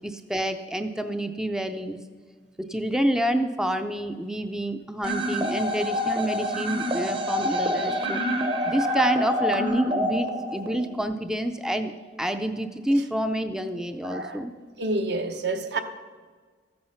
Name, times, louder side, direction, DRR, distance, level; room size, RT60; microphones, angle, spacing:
voice 1, 0.0-2.0 2.6-11.9 12.2-14.5, right 1 dB, 5° right, 0.4 m, -28 dB
sound 1, 5.0-11.0, equal, 30° right, 0.8 m, -27 dB
voice 2, 14.0-14.4 14.8-15.8, right 2 dB, 65° right, 0.9 m, -28 dB
13.5 x 8.7 x 5.6 m
head